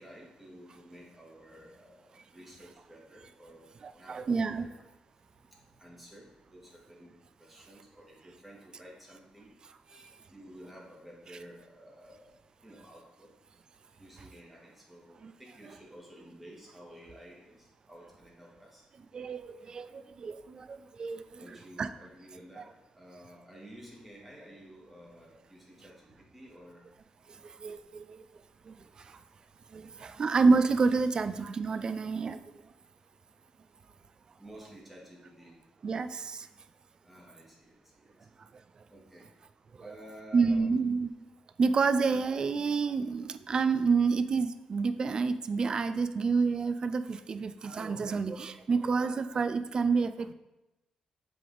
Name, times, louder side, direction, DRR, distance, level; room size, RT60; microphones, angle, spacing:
voice 1, 0.0-4.8 5.3-9.5 9.8-12.3 12.6-13.3 14.0-18.8 21.4-22.7 22.9-26.9 29.8-29.9 34.4-35.6 37.0-38.2 38.9-39.2 39.8-40.8, equal, 5° right, -4 dB, 1.7 m, -52 dB
voice 2, 3.8-4.7 15.2-15.3 19.1-21.4 21.8-21.9 22.6-22.7 27.6-28.2 28.7-28.8 29.7-32.4 35.8-36.5 40.3-41.1 41.6-50.3, right 4 dB, 40° right, 10 dB, 0.3 m, -28 dB
7.5 x 3.5 x 3.9 m, 1.0 s
cardioid pair, 115°, 2 cm